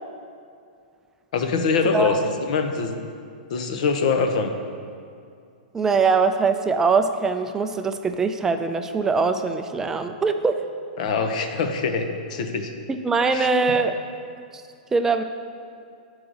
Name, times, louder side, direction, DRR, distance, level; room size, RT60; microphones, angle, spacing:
voice 1, 1.3-3.0 3.5-4.5 11.0-12.7 13.3-13.5, left 4 dB, 55° left, 6 dB, 0.8 m, -24 dB
voice 2, 5.7-10.6 12.9-14.0 14.9-15.2, right 4 dB, 10° right, 7 dB, 0.3 m, -22 dB
11.5 x 4.8 x 3.9 m, 2.4 s
hypercardioid pair, 155°, 5 cm